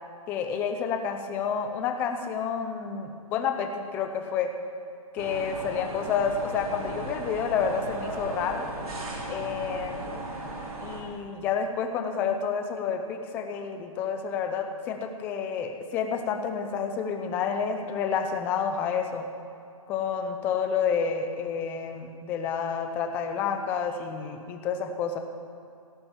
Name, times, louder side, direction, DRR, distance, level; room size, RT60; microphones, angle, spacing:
voice 1, 0.3-4.5 5.1-8.7 9.3-10.2 10.8-19.2 19.9-25.2, left 6 dB, 10° left, 6 dB, 0.6 m, -29 dB
sound 1, 5.2-11.0, right 2 dB, 80° right, 4.1 m, -36 dB
16.5 x 8.6 x 7.2 m, 2.6 s
hypercardioid pair, 165°, 18 cm